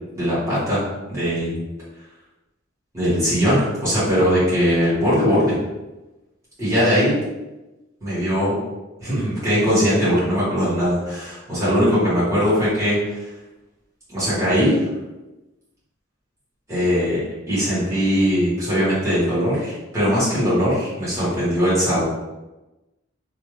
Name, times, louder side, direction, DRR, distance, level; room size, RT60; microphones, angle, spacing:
voice 1, 0.1-0.8 1.1-1.6 2.9-5.6 6.6-7.2 8.0-8.5 9.0-13.2 14.1-14.9 16.7-17.2 17.5-22.0, equal, 15° right, -12 dB, 1.3 m, -20 dB
2.6 x 2.4 x 3.1 m, 1.1 s
head